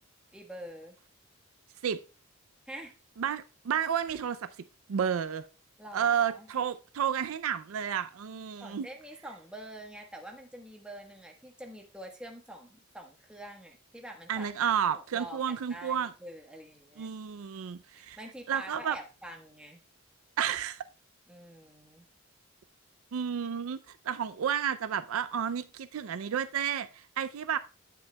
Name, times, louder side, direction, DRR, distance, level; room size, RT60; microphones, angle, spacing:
voice 1, 0.3-1.0 2.7-2.9 5.8-6.5 8.6-14.5 14.9-17.1 17.9-19.8 21.3-22.0, right 1 dB, 5° right, 1.1 m, -46 dB
voice 2, 3.2-4.5 4.9-5.4 5.9-8.9 14.3-16.1 17.0-18.2 18.5-19.0 20.4-20.8 23.1-27.6, right 8 dB, 75° right, 0.4 m, -31 dB
9.4 x 7.8 x 2.2 m
head